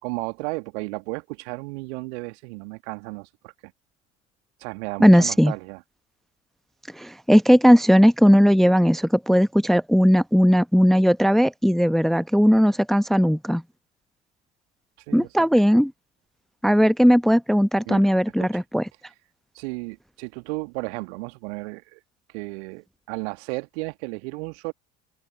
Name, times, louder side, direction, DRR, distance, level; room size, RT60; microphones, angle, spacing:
voice 1, 0.0-3.7 4.6-5.8 15.1-15.3 17.9-18.1 18.4-18.5 19.5-22.0 22.3-24.7, right 28 dB, 60° right, 2.3 m, -34 dB
voice 2, 5.0-5.5 7.0-13.6 15.1-15.9 16.6-18.8, equal, ahead, 1.0 m, -17 dB
open air
figure-of-eight pair, 65°, 38 cm